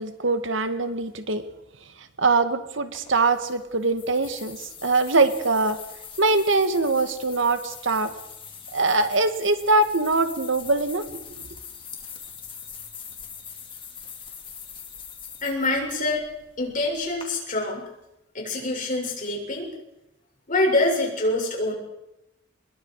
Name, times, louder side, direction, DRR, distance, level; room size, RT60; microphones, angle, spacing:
voice 1, 0.0-1.4 2.0-5.8 6.2-8.1 8.7-11.5, right 3 dB, 75° right, 9 dB, 2.0 m, -23 dB
sound 1, 2.9-17.2, left 6 dB, 25° left, 3.4 m, -43 dB
voice 2, 15.4-16.3 16.6-17.9 18.3-19.7 20.5-21.7, left 2 dB, 45° left, 0 dB, 6.9 m, -25 dB
24.5 x 22.0 x 4.9 m, 0.89 s
head